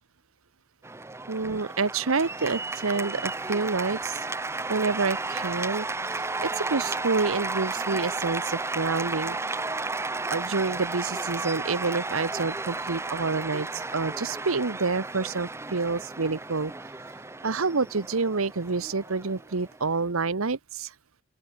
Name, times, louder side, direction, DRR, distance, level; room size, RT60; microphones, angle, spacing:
Cheering / Applause, 0.8-20.1, right 3 dB, 10° right, 0.7 m, -33 dB
voice 1, 1.3-4.3 4.7-5.9 6.1-9.6 10.3-16.9 17.4-20.9, right 4 dB, 80° right, 1.0 m, -28 dB
open air
head